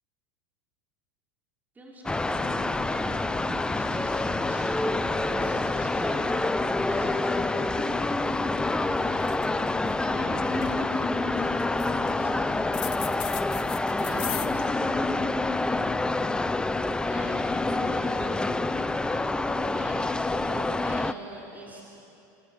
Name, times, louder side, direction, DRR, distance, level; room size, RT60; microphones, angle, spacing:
voice 1, 1.7-9.4 9.7-12.8 13.9-15.2 17.1-18.4 19.0-21.8, right 1 dB, 15° right, -5 dB, 5.8 m, -43 dB
sound 1, 2.0-21.1, left 2 dB, 10° left, 0.8 m, -27 dB
sound 2, 8.2-8.3 8.6-8.8 9.1-9.9 10.3-10.8 11.6-12.2 12.7-14.5, left 12 dB, 45° left, 1.9 m, -37 dB
27.5 x 26.0 x 8.2 m, 2.8 s
hypercardioid pair, 105°, 10 cm